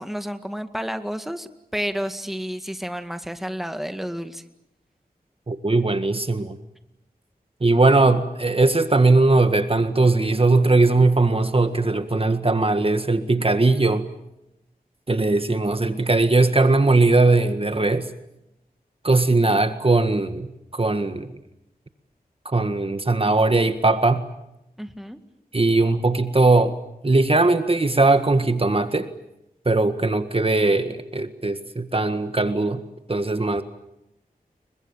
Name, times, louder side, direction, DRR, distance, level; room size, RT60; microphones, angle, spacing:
voice 1, 0.0-4.4 24.8-25.2, equal, ahead, 8 dB, 2.1 m, -31 dB
voice 2, 5.5-6.6 7.6-14.1 15.1-18.1 19.0-20.5 20.7-21.3 22.5-24.2 25.5-26.8 27.0-29.1 29.7-32.8 33.1-33.6, right 3 dB, 35° right, 9 dB, 1.7 m, -19 dB
29.5 x 23.5 x 7.3 m, 0.87 s
wide cardioid pair, 60°, 16 cm